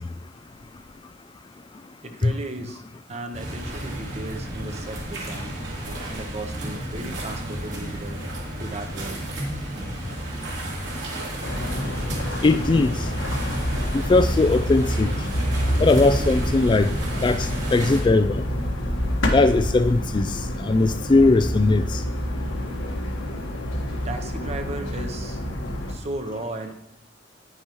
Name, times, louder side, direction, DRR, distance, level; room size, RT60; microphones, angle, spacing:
voice 1, 2.0-2.8 3.1-5.6 6.1-8.2 8.6-9.2 24.0-25.4 25.9-26.7, right 2 dB, 35° right, 6 dB, 1.0 m, -35 dB
sound 1, 3.3-18.0, right 1 dB, 75° right, 3.3 m, -32 dB
sound 2, 11.4-26.0, equal, 80° left, 1.5 m, -27 dB
voice 2, 12.4-12.9 14.1-15.1 15.8-16.9 17.2-18.4 19.3-22.0, left 3 dB, 25° left, 10 dB, 0.3 m, -19 dB
9.8 x 9.7 x 3.0 m, 0.87 s
head